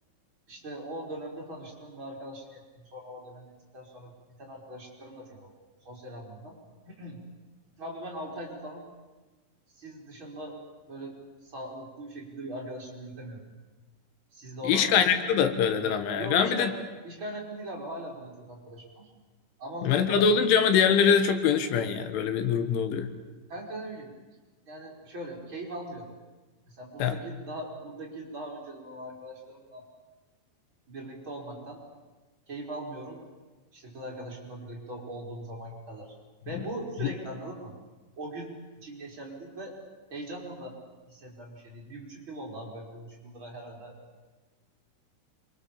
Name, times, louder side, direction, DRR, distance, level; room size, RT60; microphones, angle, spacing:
voice 1, 0.5-2.6 2.9-5.5 5.8-6.6 6.9-7.2 7.8-8.8 9.7-10.6 10.9-11.1 11.4-13.4 14.3-14.9 16.1-16.7 17.0-19.1 19.6-20.2 23.5-24.1 24.7-26.1 26.7-29.8 30.9-31.8 32.5-33.2 33.7-36.1 36.5-37.8 38.2-38.5 38.8-39.8 40.1-40.8 41.1-44.0, right 1 dB, 25° right, -2 dB, 4.7 m, -40 dB
voice 2, 14.7-16.7 19.8-23.1 27.0-27.1 37.0-37.1, left 7 dB, 85° left, 8 dB, 4.0 m, -23 dB
27.0 x 24.0 x 7.3 m, 1.2 s
omnidirectional pair, 5.4 m